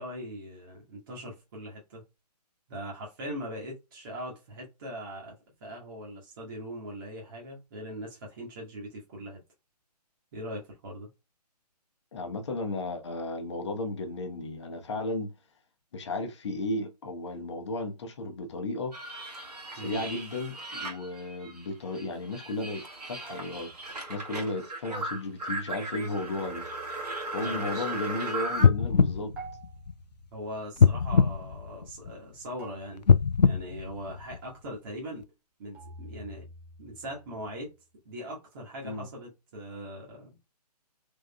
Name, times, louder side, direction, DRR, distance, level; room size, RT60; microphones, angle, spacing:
voice 1, 0.0-2.0 2.7-9.4 10.3-11.1 19.8-20.0 27.4-27.7 30.3-33.0 33.4-35.2 35.6-36.5 36.8-37.7 38.0-40.4, equal, 35° right, 1.2 m, -40 dB
voice 2, 12.1-15.3 15.9-18.9 19.7-23.7 24.1-26.7 27.3-29.3 38.8-39.1, left 2 dB, 45° left, 0.9 m, -34 dB
sound 1, 18.9-21.7 21.9-28.7, right 2 dB, 70° right, 1.4 m, -37 dB
sound 2, 23.3-24.2 26.2-27.7 29.4-30.7 32.6-33.7 35.7-37.8, right 3 dB, 5° right, 0.5 m, -49 dB
sound 3, 28.6-30.2 30.8-32.3 33.0-34.7 35.2-35.3, left 6 dB, 80° left, 0.5 m, -23 dB
3.6 x 3.6 x 2.2 m
figure-of-eight pair, 135°, 21 cm